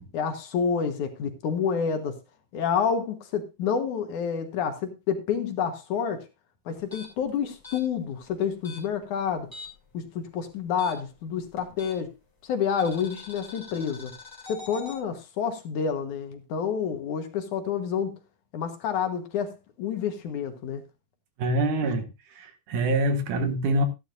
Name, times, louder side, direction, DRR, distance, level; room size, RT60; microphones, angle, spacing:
voice 1, 0.1-2.2 2.5-6.2 6.7-9.5 9.9-12.1 12.4-14.1 14.5-18.2 18.5-20.8, left 7 dB, 65° left, 2.6 m, -29 dB
sound 1, 6.8-9.9 10.2-12.2 12.8-15.0, left 4 dB, 5° left, 2.8 m, -44 dB
voice 2, 21.4-23.9, right 1 dB, 70° right, 2.8 m, -25 dB
14.0 x 11.5 x 2.6 m
omnidirectional pair, 4.0 m